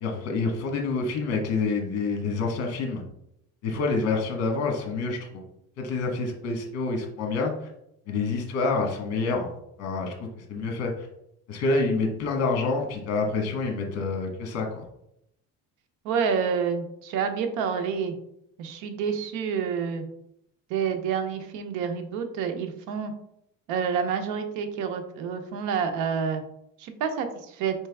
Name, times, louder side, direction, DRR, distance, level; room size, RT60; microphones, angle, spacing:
voice 1, 0.0-3.0 3.6-5.4 5.8-7.5 8.1-9.5 9.8-10.1 10.5-10.9 11.5-14.8, left 3 dB, 55° left, 2 dB, 1.2 m, -27 dB
voice 2, 16.0-18.1 18.6-20.1 20.7-23.1 23.7-26.4 26.8-27.7, right 6 dB, 80° right, 7 dB, 0.7 m, -28 dB
4.4 x 3.4 x 3.4 m, 0.77 s
cardioid pair, 150°, 30 cm